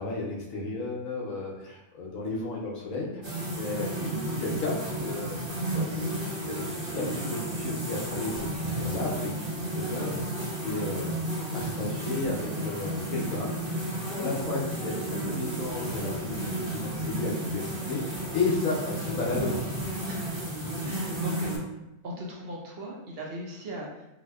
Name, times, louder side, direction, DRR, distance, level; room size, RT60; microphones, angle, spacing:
voice 1, 0.0-3.2 3.5-5.4 5.7-6.0 6.4-10.1 10.6-11.1 11.5-13.8 14.1-19.7, left 3 dB, 70° left, -3 dB, 1.1 m, -33 dB
sound 1, 3.2-21.6, right 1 dB, 20° right, 1.3 m, -32 dB
voice 2, 20.0-20.5 20.8-21.5 22.0-24.0, equal, 55° right, -3 dB, 0.7 m, -38 dB
3.3 x 2.6 x 2.4 m, 0.93 s
omnidirectional pair, 1.5 m